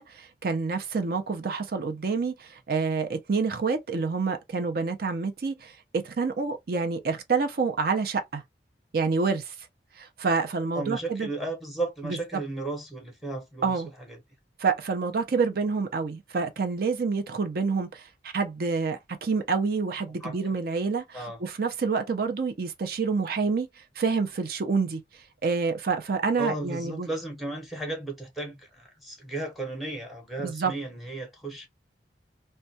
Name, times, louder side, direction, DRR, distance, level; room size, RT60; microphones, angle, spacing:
voice 1, 0.0-8.4 8.9-9.5 10.0-11.3 12.0-12.2 13.6-13.9 14.6-23.7 24.0-25.0 25.4-27.1 30.4-30.7, right 4 dB, 55° right, 0.5 m, -28 dB
voice 2, 10.7-14.2 20.2-20.4 21.1-21.4 26.4-31.7, right 2 dB, ahead, 0.7 m, -35 dB
2.2 x 2.2 x 2.6 m
head